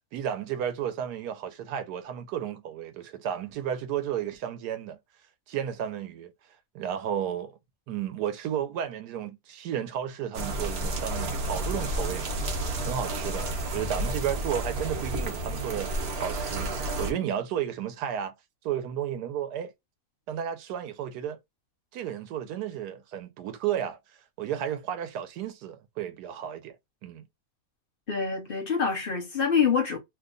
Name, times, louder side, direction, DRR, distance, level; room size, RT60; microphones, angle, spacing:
voice 1, 0.1-5.0 5.5-6.3 6.7-7.6 7.9-12.3 12.9-18.3 18.6-19.7 20.3-21.4 21.9-24.0 24.4-26.8 27.0-27.2, right 9 dB, 90° right, 1.2 m, -33 dB
sound 1, 10.3-17.1, right 2 dB, 55° right, 0.7 m, -31 dB
voice 2, 28.1-30.0, left 6 dB, 50° left, 0.7 m, -26 dB
2.8 x 2.2 x 3.6 m
omnidirectional pair, 1.7 m